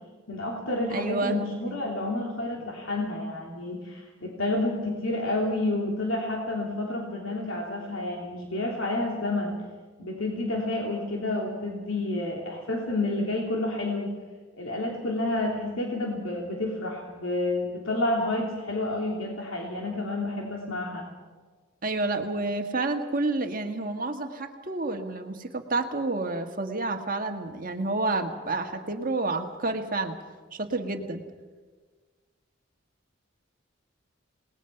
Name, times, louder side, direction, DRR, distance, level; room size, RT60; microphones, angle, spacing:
voice 1, 0.3-9.6 10.0-14.1 14.5-21.1, left 2 dB, 85° left, -1 dB, 3.3 m, -29 dB
voice 2, 0.9-1.4 1.6-1.8 21.8-30.1 30.5-31.2, right 2 dB, 45° right, 5 dB, 1.7 m, -29 dB
28.5 x 19.5 x 5.9 m, 1.4 s
head